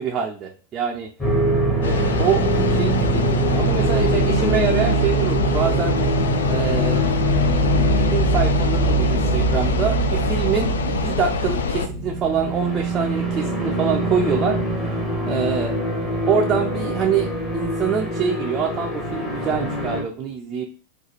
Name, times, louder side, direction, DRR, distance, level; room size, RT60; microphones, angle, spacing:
voice 1, 0.0-1.1 1.8-5.9 6.4-7.0 8.0-14.6 15.3-15.7 16.3-17.3 17.5-20.6, right 6 dB, 25° right, 0 dB, 0.4 m, -25 dB
sound 1, 1.2-20.0, right 2 dB, 15° left, 1.1 m, -23 dB
sound 2, 1.8-11.9, left 6 dB, 65° left, 0.3 m, -25 dB
3.9 x 2.4 x 2.8 m, 0.39 s
figure-of-eight pair, 90°, 0 cm